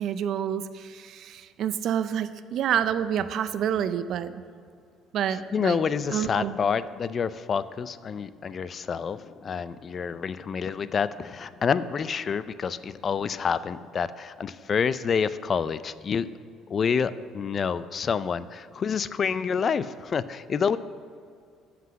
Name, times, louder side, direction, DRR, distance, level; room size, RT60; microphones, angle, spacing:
voice 1, 0.0-4.4 5.1-5.8 6.1-6.6, right 9 dB, 65° right, 12 dB, 0.4 m, -28 dB
voice 2, 5.5-16.3 16.7-20.8, left 6 dB, 40° left, 15 dB, 0.4 m, -28 dB
7.6 x 5.9 x 7.4 m, 2.3 s
cardioid pair, 95°, 0 cm